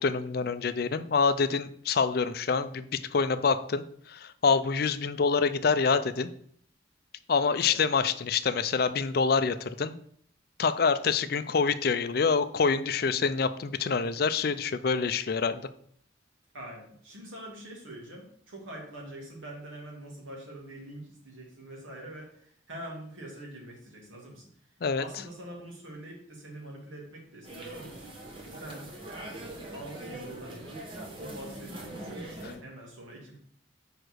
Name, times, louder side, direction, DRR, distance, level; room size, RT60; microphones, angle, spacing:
voice 1, 0.0-6.3 7.3-10.0 10.6-15.7 24.8-25.0, left 5 dB, 50° left, 12 dB, 0.4 m, -26 dB
voice 2, 16.5-24.5 24.9-28.0 28.5-28.9 29.7-30.8 31.2-33.4, right 1 dB, 85° right, -1 dB, 2.5 m, -44 dB
sound 1, 27.4-32.6, right 1 dB, 25° right, 1.2 m, -42 dB
5.0 x 4.9 x 6.3 m, 0.63 s
head